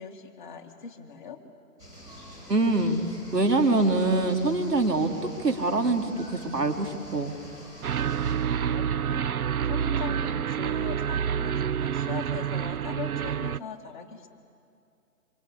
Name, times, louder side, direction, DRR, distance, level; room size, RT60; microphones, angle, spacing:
voice 1, 0.0-1.4 8.7-9.3 9.7-14.3, left 6 dB, 30° left, 3 dB, 2.0 m, -40 dB
sound 1, 1.8-8.3, equal, 5° right, 7.3 m, -46 dB
voice 2, 2.5-3.0 3.3-5.1 5.4-7.4, right 2 dB, 85° right, 4 dB, 3.5 m, -24 dB
sound 2, 7.8-13.6, right 8 dB, 65° right, 0.6 m, -28 dB
27.0 x 26.0 x 8.5 m, 2.6 s
figure-of-eight pair, 160°, 47 cm